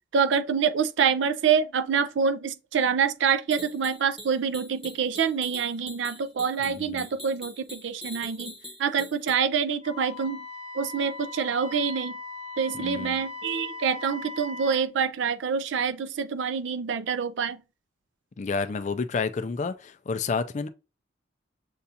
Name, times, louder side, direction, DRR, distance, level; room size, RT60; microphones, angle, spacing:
voice 1, 0.1-8.5 8.8-10.5 10.7-12.2 12.6-17.6, right 6 dB, 70° right, 0.4 m, -26 dB
sound 1, 3.5-9.3, equal, ahead, 0.9 m, -43 dB
voice 2, 6.7-7.1 12.7-13.1 18.4-20.7, left 4 dB, 35° left, 0.3 m, -30 dB
Wind instrument woodwind instrument, 9.8-14.9, left 3 dB, 25° right, 1.1 m, -39 dB
6.8 x 2.4 x 2.7 m
head